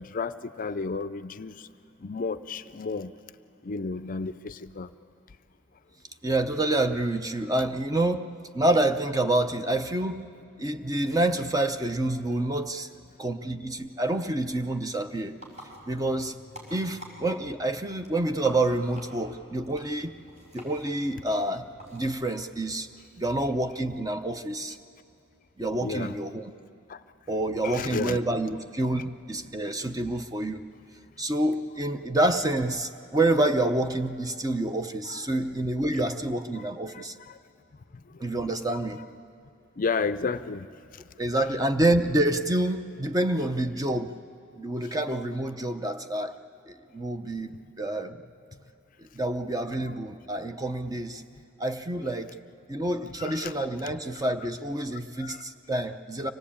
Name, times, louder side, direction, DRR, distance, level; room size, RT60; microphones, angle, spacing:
voice 1, 0.0-1.7 2.0-3.1 3.6-4.9 25.8-26.2 26.9-27.0 27.6-28.2 35.0-35.2 36.5-37.4 38.4-39.1 39.8-40.7 49.7-49.8 52.0-52.1 53.2-53.5 54.1-54.2 54.9-55.4, left 4 dB, 45° left, 13 dB, 0.5 m, -33 dB
voice 2, 6.2-10.2 10.6-12.9 13.2-15.3 15.9-16.3 16.7-20.1 20.5-22.9 23.2-24.8 25.6-26.5 27.3-30.6 31.2-37.1 38.2-39.0 41.2-44.1 44.6-46.3 46.7-48.2 49.0-51.2 51.6-52.3 52.7-56.3, right 1 dB, 20° right, 7 dB, 0.7 m, -27 dB
sound 1, 15.0-22.1, equal, 35° right, 5.3 m, -48 dB
25.0 x 17.5 x 8.6 m, 2.5 s
head